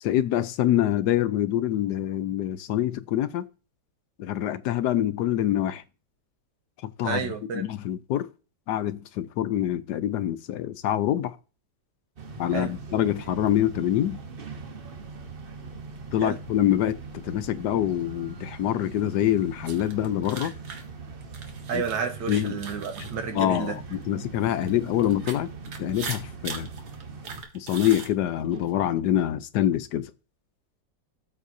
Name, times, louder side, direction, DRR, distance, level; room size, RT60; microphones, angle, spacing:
voice 1, 0.0-3.5 4.2-5.8 7.0-8.3 8.7-11.3 12.4-14.2 16.1-20.5 21.7-21.8 22.3-22.6 23.0-23.1 23.3-25.5 25.8-26.7 27.5-30.1, left 12 dB, 75° left, 1.2 m, -25 dB
voice 2, 7.0-7.6 12.5-12.7 16.2-16.4 21.7-23.7, right 6 dB, 85° right, 1.9 m, -31 dB
sound 1, 12.2-27.4, right 4 dB, 40° right, 1.0 m, -41 dB
sound 2, 19.6-23.9 24.4-28.7, right 5 dB, 70° right, 1.9 m, -40 dB
13.0 x 7.4 x 2.7 m
omnidirectional pair, 1.9 m